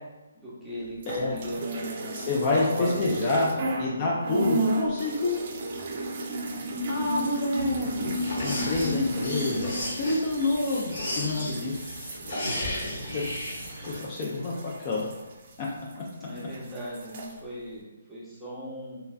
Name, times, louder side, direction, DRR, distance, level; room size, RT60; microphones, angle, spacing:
voice 1, 0.3-3.5 4.0-4.2 16.2-19.0, equal, ahead, -10 dB, 0.7 m, -38 dB
sound 1, 1.0-3.9 4.2-16.1 16.4-17.3, right 1 dB, 40° right, 0.4 m, -34 dB
voice 2, 1.1-1.4 2.1-3.5 3.8-5.4 6.9-8.1 8.4-9.7 10.0-11.9 13.1-13.2 13.9-14.5 14.8-15.1 15.6-15.7, left 2 dB, 30° left, -4 dB, 0.4 m, -27 dB
sound 2, 7.6-14.0, left 1 dB, 65° left, 1.3 m, -34 dB
3.1 x 2.4 x 2.2 m, 1.1 s
hypercardioid pair, 155°, 0 cm